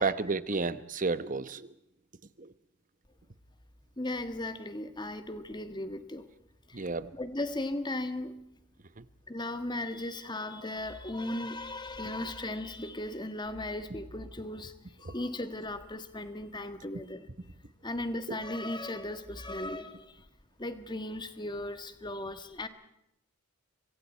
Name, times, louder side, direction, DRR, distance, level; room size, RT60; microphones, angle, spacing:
voice 1, 0.0-1.7 2.4-2.5 6.7-7.1 9.0-9.1 15.0-15.1, right 4 dB, 35° right, 14 dB, 1.0 m, -31 dB
voice 2, 4.0-6.3 6.7-8.4 9.3-14.7 15.0-17.3 17.8-20.2 20.6-22.7, left 1 dB, 20° left, 10 dB, 1.6 m, -37 dB
27.0 x 24.0 x 4.5 m, 0.81 s
head